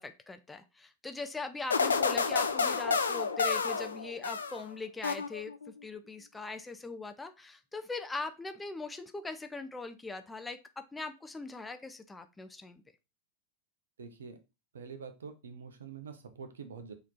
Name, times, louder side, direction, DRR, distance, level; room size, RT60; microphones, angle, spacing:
voice 1, 0.0-5.5 5.8-10.6 10.9-12.8, left 3 dB, 10° left, 8 dB, 0.5 m, -41 dB
sound 1, 1.7-4.7 5.0-5.7, left 5 dB, 75° left, 0.4 m, -30 dB
voice 2, 14.0-14.4 14.7-16.9, right 5 dB, 65° right, 8 dB, 0.7 m, -45 dB
4.2 x 2.9 x 4.0 m, 0.27 s
figure-of-eight pair, 90°, 0 cm